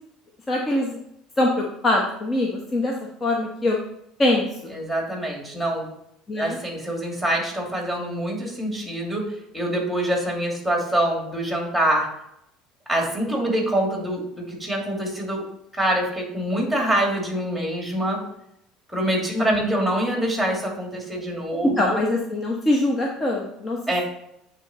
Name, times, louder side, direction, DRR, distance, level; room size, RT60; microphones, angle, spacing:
voice 1, 0.5-0.9 1.4-2.9 3.2-3.8 4.2-4.7 6.3-6.6 19.3-19.6 21.6-23.8, left 1 dB, 25° left, -1 dB, 1.1 m, -23 dB
voice 2, 4.7-5.9 6.4-9.3 9.5-12.1 12.9-15.4 15.7-18.2 18.9-22.0 23.9-24.0, right 1 dB, ahead, 0 dB, 2.7 m, -25 dB
9.0 x 3.8 x 4.3 m, 0.76 s
supercardioid pair, 100°, 0 cm